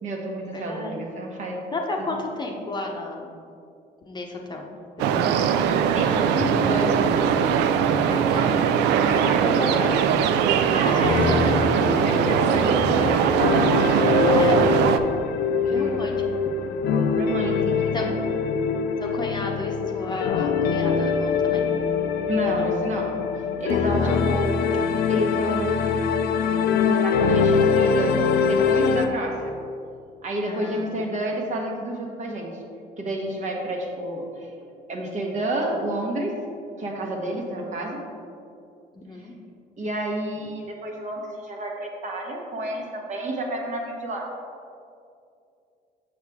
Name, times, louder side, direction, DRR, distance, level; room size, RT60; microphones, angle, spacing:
voice 1, 0.0-1.6 2.0-2.2 5.9-7.4 9.0-9.7 10.5-11.3 12.1-13.6 14.5-14.9 15.6-16.1 17.1-18.2 22.3-23.1 23.6-24.5 25.1-26.3 26.7-28.2 28.4-29.5 30.2-32.5 33.0-34.5 34.9-36.3 36.8-38.0 39.8-44.3, right 1 dB, 45° right, 0 dB, 1.3 m, -30 dB
voice 2, 0.5-1.0 1.7-3.3 4.0-4.7 5.1-5.2 8.1-8.5 9.3-9.9 11.3-11.4 14.2-14.6 15.7-16.2 17.9-18.2 19.0-21.6 22.5-22.7 24.0-24.2 30.4-31.1 38.9-39.3, left 2 dB, 25° left, 1 dB, 0.8 m, -32 dB
sound 1, 5.0-15.0, right 7 dB, 90° right, 0.4 m, -21 dB
sound 2, 11.0-29.1, left 5 dB, 70° left, 0.5 m, -23 dB
7.1 x 6.4 x 3.6 m, 2.5 s
cardioid pair, 110°, 17 cm